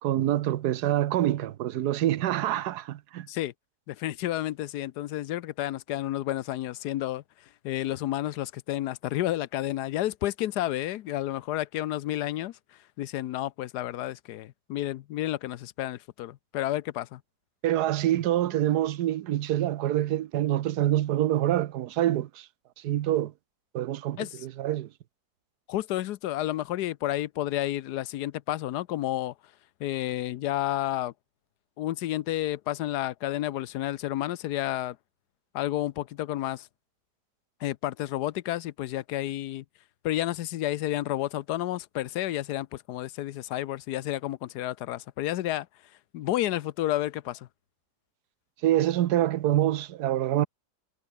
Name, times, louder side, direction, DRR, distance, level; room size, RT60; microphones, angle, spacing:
voice 1, 0.0-3.3 17.6-22.5 22.8-23.3 23.7-24.9 48.6-50.5, right 13 dB, 80° right, 1.3 m, -26 dB
voice 2, 3.9-7.2 7.6-12.6 13.0-17.2 24.2-24.5 25.7-29.3 29.8-31.1 31.8-35.0 35.5-36.7 37.6-39.6 40.0-45.7 46.1-47.5, left 14 dB, 80° left, 1.2 m, -31 dB
omnidirectional pair, 1.7 m